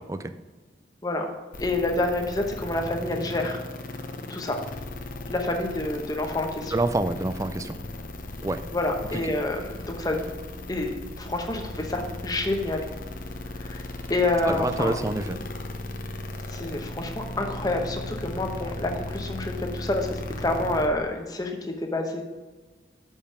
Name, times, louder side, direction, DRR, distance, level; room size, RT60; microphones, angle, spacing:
sound 1, 1.5-20.9, left 2 dB, 50° left, 0.8 m, -37 dB
voice 1, 1.6-3.6 4.3-4.6 5.3-6.7 8.7-10.3 10.7-12.9 13.6-15.0 16.5-22.2, left 2 dB, 20° left, 3 dB, 0.9 m, -28 dB
voice 2, 6.7-7.8 8.4-8.6 14.5-15.4, right 2 dB, 15° right, 11 dB, 0.3 m, -27 dB
6.8 x 5.4 x 5.5 m, 1.3 s
head